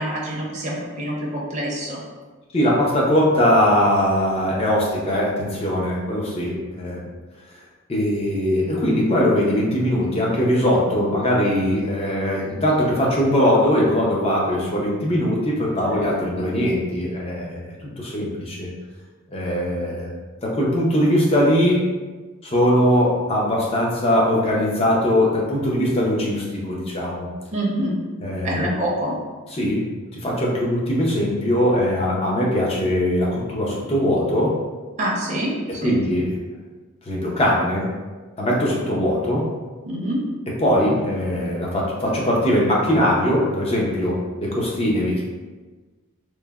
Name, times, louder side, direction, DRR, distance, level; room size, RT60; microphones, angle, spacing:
voice 1, 0.0-2.0 15.9-16.3 27.5-28.0 28.4-29.1 35.0-35.5 35.8-36.0 39.9-40.2, right 1 dB, 30° right, -5 dB, 0.5 m, -26 dB
voice 2, 2.5-7.0 7.9-18.7 19.3-20.1 20.4-21.8 22.4-27.3 28.2-28.7 29.5-29.8 30.1-34.5 35.8-36.3 37.1-37.9 38.4-39.4 40.6-45.2, equal, 25° left, -4 dB, 0.5 m, -21 dB
3.1 x 2.0 x 2.3 m, 1.3 s
head